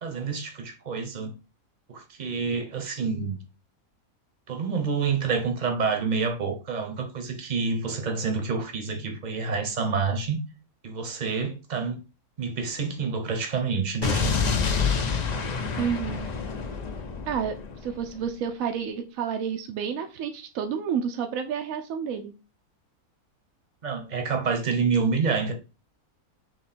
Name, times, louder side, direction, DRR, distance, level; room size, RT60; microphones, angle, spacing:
voice 1, 0.0-1.3 1.9-3.4 4.5-10.4 10.8-12.0 12.4-14.6 23.8-25.5, right 5 dB, 35° right, 0.8 m, -28 dB
Explosion, 14.0-18.1, left 5 dB, 60° left, 0.4 m, -27 dB
voice 2, 15.8-16.2 17.3-22.3, right 7 dB, 70° right, 0.9 m, -30 dB
3.6 x 3.1 x 4.2 m
omnidirectional pair, 1.6 m